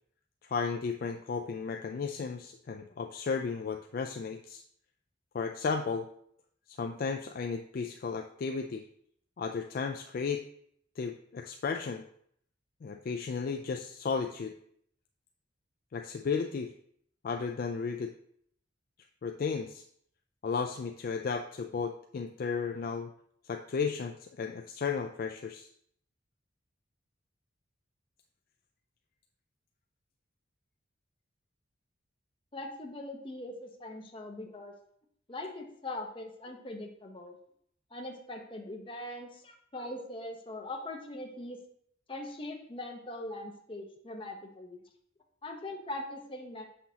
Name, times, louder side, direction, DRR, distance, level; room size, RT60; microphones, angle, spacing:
voice 1, 0.4-4.6 5.3-6.1 6.7-8.8 9.4-10.4 11.0-12.0 12.8-14.5 15.9-16.7 17.2-18.1 19.2-19.8 20.4-23.1 23.4-25.7, left 5 dB, 50° left, 5 dB, 0.3 m, -34 dB
voice 2, 32.5-34.7 35.3-37.4 37.9-41.6 42.1-44.8 45.4-46.7, left 1 dB, 25° left, 2 dB, 0.9 m, -41 dB
7.4 x 5.8 x 2.8 m, 0.67 s
head